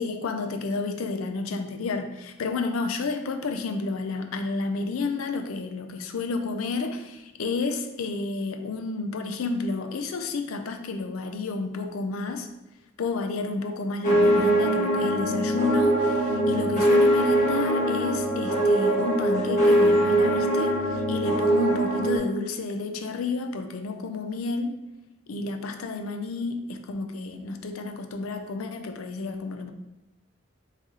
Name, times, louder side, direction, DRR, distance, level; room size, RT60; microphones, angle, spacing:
voice 1, 0.0-12.5 13.0-24.8 25.3-29.7, left 3 dB, 85° left, 6 dB, 0.5 m, -30 dB
sound 1, 14.0-22.2, right 1 dB, 40° left, 1.4 m, -22 dB
3.7 x 3.2 x 4.1 m, 0.96 s
head